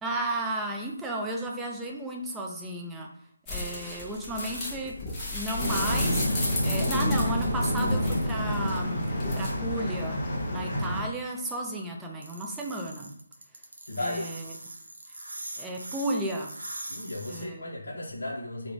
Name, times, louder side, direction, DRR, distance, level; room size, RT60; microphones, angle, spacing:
voice 1, 0.0-3.1 3.5-6.2 6.6-10.2 10.5-13.1 14.0-14.5 15.6-16.5 17.3-18.0, right 1 dB, 5° right, 0 dB, 0.3 m, -33 dB
sound 1, 3.4-9.5, left 2 dB, 10° left, 0.7 m, -34 dB
sound 2, 5.6-11.0, equal, 30° left, 1.0 m, -28 dB
sound 3, 12.2-17.4, right 1 dB, 65° right, 0.7 m, -41 dB
voice 2, 13.9-14.3 16.9-18.7, left 1 dB, 60° left, -2 dB, 0.5 m, -35 dB
2.9 x 2.0 x 2.6 m, 0.67 s
figure-of-eight pair, 150°, 0 cm